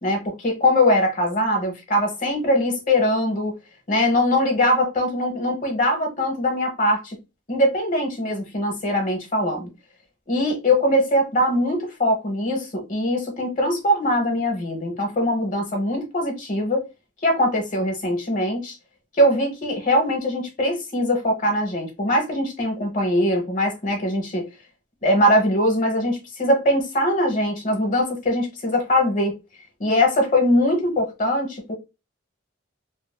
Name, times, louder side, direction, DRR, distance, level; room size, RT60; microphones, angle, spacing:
voice 1, 0.0-3.6 3.9-7.2 7.5-9.7 10.3-16.8 17.2-18.7 19.2-24.5 25.0-29.4 29.8-31.7, left 1 dB, 40° left, 0.9 m, -22 dB
2.8 x 2.5 x 2.2 m
head